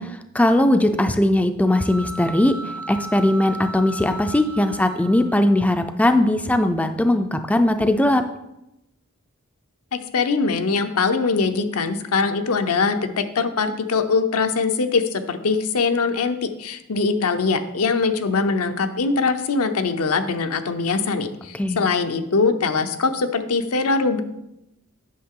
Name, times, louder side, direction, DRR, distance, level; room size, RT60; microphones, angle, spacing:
voice 1, 0.0-2.5 2.9-8.2 21.6-21.9, left 1 dB, 5° left, 8 dB, 0.3 m, -19 dB
sound 1, 1.7-5.7, right 2 dB, 75° right, 0.7 m, -36 dB
voice 2, 9.9-24.2, left 4 dB, 80° left, 8 dB, 0.7 m, -22 dB
8.6 x 6.4 x 3.7 m, 0.88 s
head